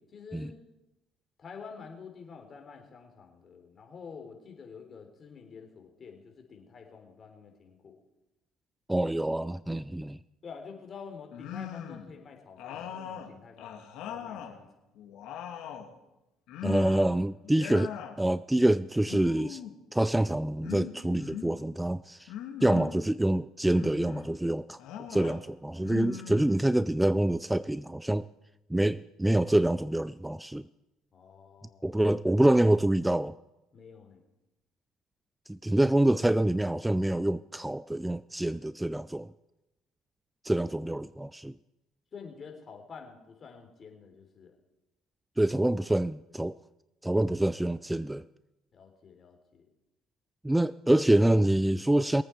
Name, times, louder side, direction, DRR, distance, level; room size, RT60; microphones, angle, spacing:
voice 1, 0.1-0.6 1.4-8.0 10.4-14.7 31.1-32.0 33.7-34.3 40.6-40.7 42.1-44.6 48.7-49.7, left 5 dB, 40° left, 3.5 m, -48 dB
voice 2, 8.9-10.2 16.6-17.9 18.2-19.6 19.9-22.3 22.6-24.8 25.1-28.3 28.7-30.7 31.8-33.4 35.5-39.3 40.4-41.5 45.4-46.6 47.0-48.2 50.4-52.2, right 1 dB, 10° right, 0.4 m, -26 dB
sound 1, 11.3-12.1 12.6-14.6 14.9-15.9 16.5-17.2 17.4-18.2 19.0-19.8 20.6-21.5 22.3-23.0 23.7-24.3 24.8-25.4 25.8-26.9, left 9 dB, 70° left, 2.0 m, -40 dB
22.0 x 8.7 x 4.7 m
supercardioid pair, 70°, 0 cm